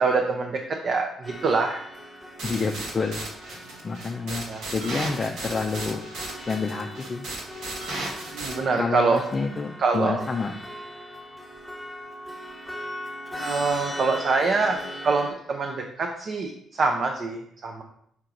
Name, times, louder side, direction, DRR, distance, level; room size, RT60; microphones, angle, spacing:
voice 1, 0.0-1.8 4.3-4.6 8.3-9.2 9.8-10.2 13.4-14.8 15.0-17.8, right 4 dB, 40° right, 3 dB, 0.6 m, -25 dB
sound 1, 1.2-15.3, left 1 dB, 5° right, 1.4 m, -40 dB
voice 2, 2.4-3.3 3.8-6.0 6.5-7.3 8.8-10.5, left 4 dB, 25° left, 1 dB, 0.4 m, -28 dB
sound 2, 2.4-8.5, right 2 dB, 80° right, 1.6 m, -35 dB
5.9 x 4.5 x 3.8 m, 0.71 s
cardioid pair, 145°, 0 cm